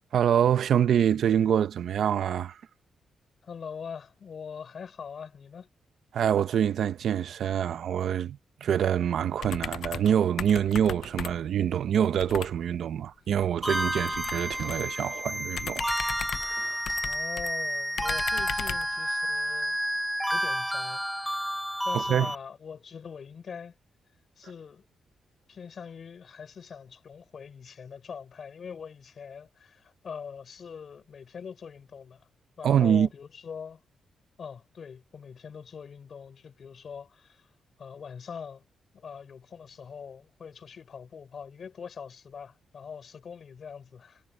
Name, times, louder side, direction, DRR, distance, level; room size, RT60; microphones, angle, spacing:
voice 1, 0.1-2.6 6.1-17.0 21.9-22.3 32.6-33.1, right 9 dB, 65° right, 0.7 m, -26 dB
voice 2, 3.4-5.7 17.0-19.8 20.3-21.6 21.8-23.8 24.4-24.9 25.5-32.3 32.6-33.8 34.4-37.5 37.8-38.6 38.9-44.2, left 6 dB, 45° left, 3.7 m, -43 dB
sound 1, 9.4-10.1 10.4-11.6 12.2-12.5 14.0-14.9 15.5-17.5 18.0-18.9, left 9 dB, 70° left, 0.5 m, -37 dB
sound 2, 13.6-22.4, equal, ahead, 0.8 m, -30 dB
wide cardioid pair, 140°, 0 cm